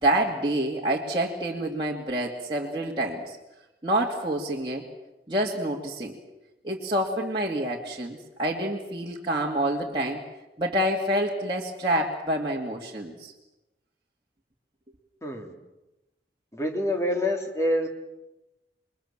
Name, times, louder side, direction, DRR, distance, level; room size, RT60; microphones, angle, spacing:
voice 1, 0.0-3.4 3.8-4.8 5.3-6.1 6.6-10.2 10.6-13.3, right 1 dB, 25° right, -4 dB, 2.2 m, -27 dB
voice 2, 15.2-15.5 16.5-17.9, left 1 dB, 15° left, 2 dB, 3.0 m, -26 dB
28.5 x 22.0 x 7.3 m, 1.0 s
head